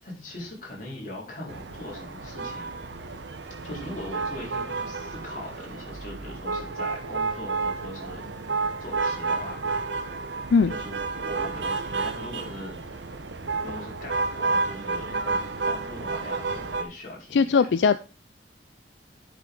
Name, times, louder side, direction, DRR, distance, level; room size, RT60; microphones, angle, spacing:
voice 1, 0.0-2.7 3.6-8.2 8.8-9.7 10.7-13.1 13.6-17.5, left 1 dB, 45° left, -3 dB, 4.2 m, -40 dB
sound 1, 1.5-16.8, right 4 dB, 80° right, 1.0 m, -31 dB
voice 2, 17.3-18.0, left 5 dB, 80° left, 12 dB, 0.4 m, -20 dB
10.0 x 6.1 x 3.9 m, 0.33 s
head